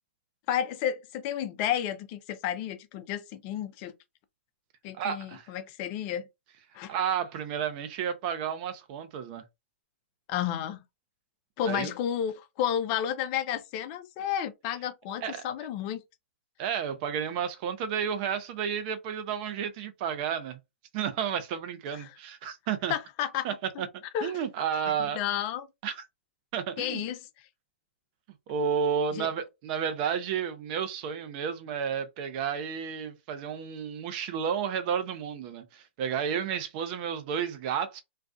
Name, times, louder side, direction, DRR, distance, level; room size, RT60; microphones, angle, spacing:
voice 1, 0.5-3.9 4.8-6.2 6.7-6.9 10.3-10.8 11.6-16.0 21.9-22.2 22.9-23.5 23.8-23.9 24.1-24.3 24.9-25.7 26.8-27.2 29.1-29.3, left 10 dB, 35° left, 0.4 m, -32 dB
voice 2, 5.0-5.5 6.9-9.4 11.6-11.9 15.2-15.5 16.6-20.6 20.9-22.9 23.4-25.2 25.8-26.0 26.5-27.1 28.5-38.0, right 7 dB, 40° right, 0.5 m, -31 dB
2.5 x 2.3 x 2.2 m
hypercardioid pair, 125°, 7 cm